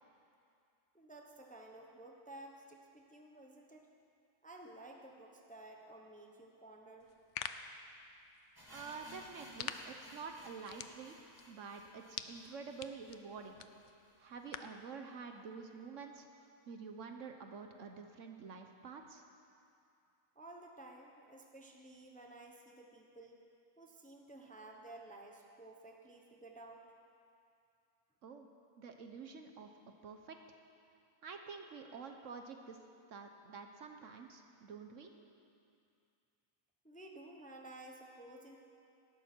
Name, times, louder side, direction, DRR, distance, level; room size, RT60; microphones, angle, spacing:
voice 1, 0.9-3.9 4.4-7.1 20.3-23.4 23.8-26.8 36.8-38.6, right 2 dB, 5° left, 1 dB, 0.8 m, -54 dB
sound 1, 7.0-14.8, left 8 dB, 65° left, 0.8 m, -49 dB
sound 2, 8.6-14.5 14.7-14.8 15.1-15.2 15.8-15.9, equal, 15° right, 1.8 m, -58 dB
voice 2, 8.7-13.6 14.2-16.3 16.7-19.2 28.2-28.5 28.8-29.7 30.0-30.4 31.2-32.8 33.1-35.1, right 5 dB, 60° right, 5 dB, 1.1 m, -48 dB
18.5 x 12.0 x 4.5 m, 2.5 s
omnidirectional pair, 1.5 m